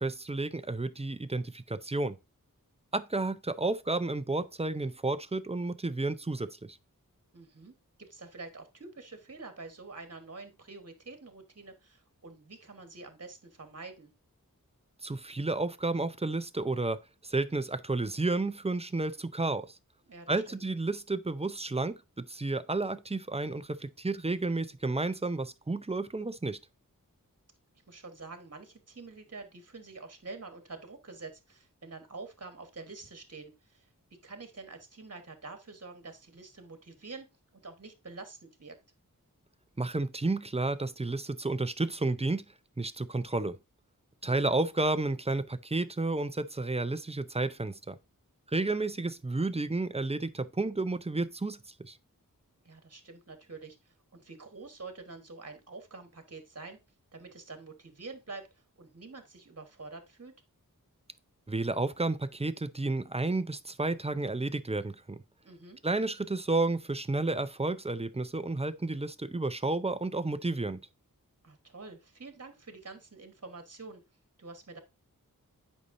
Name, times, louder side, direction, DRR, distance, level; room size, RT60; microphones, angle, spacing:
voice 1, 0.0-2.2 2.9-6.8 15.0-17.0 17.2-19.8 20.3-26.6 39.8-42.4 42.8-43.6 44.2-48.0 48.5-52.0 61.5-65.2 65.8-70.8, right 2 dB, 20° right, 0.5 m, -31 dB
voice 2, 7.3-14.1 20.1-20.6 27.9-33.8 34.2-37.3 37.5-38.8 44.2-44.5 52.6-56.8 57.1-58.5 58.8-60.3 65.4-65.8 71.4-74.0 74.4-74.8, right 3 dB, 45° right, 1.4 m, -47 dB
8.1 x 5.5 x 2.6 m
wide cardioid pair, 45°, 34 cm